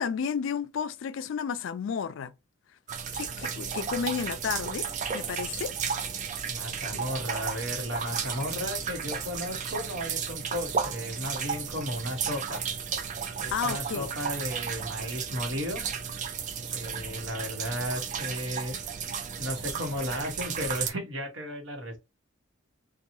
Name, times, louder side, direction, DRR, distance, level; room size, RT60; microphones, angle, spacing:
voice 1, 0.0-2.3 3.1-4.9 5.1-5.7 6.9-7.0 13.5-14.1, left 7 dB, 70° left, 0.3 m, -32 dB
sound 1, 2.9-20.9, right 6 dB, 40° right, 0.4 m, -34 dB
voice 2, 6.5-12.6 13.4-15.8 16.7-18.7 19.4-22.0, equal, 70° right, 1.0 m, -34 dB
2.9 x 2.2 x 2.6 m
head